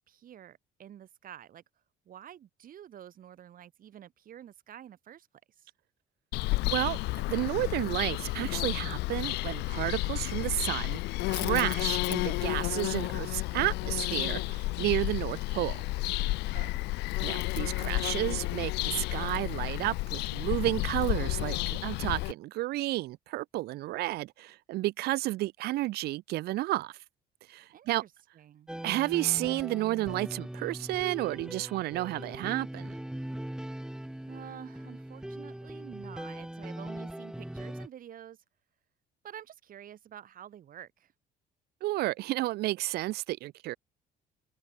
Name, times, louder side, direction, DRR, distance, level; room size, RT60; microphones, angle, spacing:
voice 1, 0.1-1.6 2.1-5.3 5.6-5.7 16.5-17.0 27.7-28.7 34.3-38.4 39.2-41.1, right 10 dB, 55° right, 5.3 m, -49 dB
Bird vocalization bird call bird song, 6.3-22.3, left 21 dB, 85° left, 0.6 m, -31 dB
voice 2, 6.7-7.0 7.3-11.0 11.3-15.8 17.2-26.9 27.5-28.0 28.8-32.9 41.8-43.8, right 17 dB, 70° right, 0.5 m, -31 dB
sound 1, 28.7-37.9, right 1 dB, 5° right, 2.3 m, -40 dB
cardioid pair, 110°, 17 cm